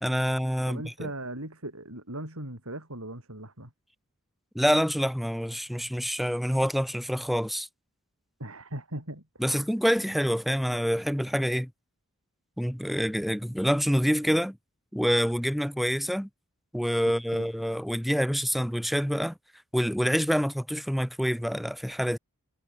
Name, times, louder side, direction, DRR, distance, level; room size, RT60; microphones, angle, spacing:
voice 1, 0.0-1.1 4.5-7.7 9.4-11.7 12.6-14.6 14.9-16.3 16.7-19.3 19.7-22.2, equal, ahead, 1.5 m, -27 dB
voice 2, 0.7-3.7 8.4-9.2 17.4-17.5, right 1 dB, 75° right, 7.7 m, -38 dB
head